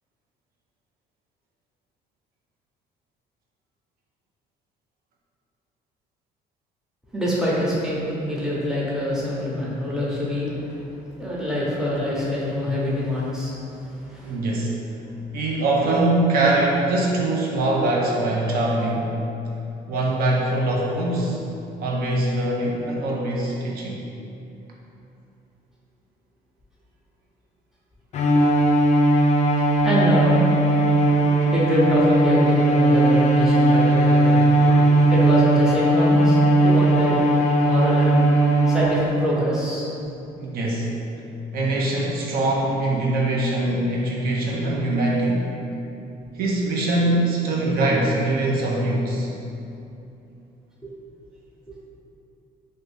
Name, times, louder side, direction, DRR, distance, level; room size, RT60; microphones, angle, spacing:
voice 1, 7.1-10.8 11.2-13.5 13.8-14.4 29.8-30.4 31.5-34.5 35.1-36.4 36.6-37.3 37.6-38.2 38.7-39.9 50.8-50.9, left 1 dB, 5° right, -7 dB, 0.7 m, -24 dB
voice 2, 14.2-14.8 15.3-19.1 19.9-21.4 21.8-24.0 40.4-40.9 41.5-45.5 46.3-49.3, right 2 dB, 65° right, -3 dB, 0.4 m, -23 dB
Bowed string instrument, 28.1-39.3, right 1 dB, 45° left, 0.4 m, -18 dB
2.6 x 2.6 x 3.2 m, 2.8 s
cardioid pair, 110°, 17 cm